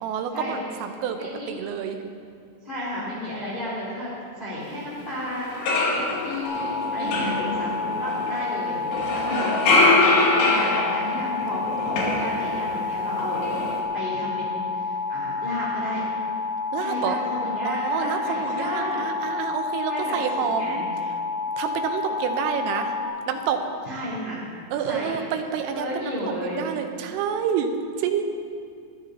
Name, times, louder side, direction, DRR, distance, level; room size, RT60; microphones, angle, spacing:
voice 1, 0.0-1.2 1.5-2.0 7.0-7.3 9.2-9.6 16.7-17.2 17.7-20.8 21.6-23.0 23.3-23.6 24.7-27.7 28.0-28.2, right 8 dB, 85° right, 5 dB, 3.5 m, -28 dB
voice 2, 1.2-1.5 2.6-8.9 9.4-13.5 13.9-16.0 16.7-19.0 19.9-20.8 23.8-24.4 24.8-25.2 25.7-26.6, left 1 dB, 10° left, -9 dB, 2.7 m, -33 dB
sound 1, 5.0-5.1 5.4-8.5 8.9-12.8 13.1-13.8, left 2 dB, 90° left, 5.2 m, -23 dB
sound 2, 6.4-23.1, left 4 dB, 35° left, 2.0 m, -29 dB
23.0 x 13.5 x 2.9 m, 2.3 s
omnidirectional pair, 5.8 m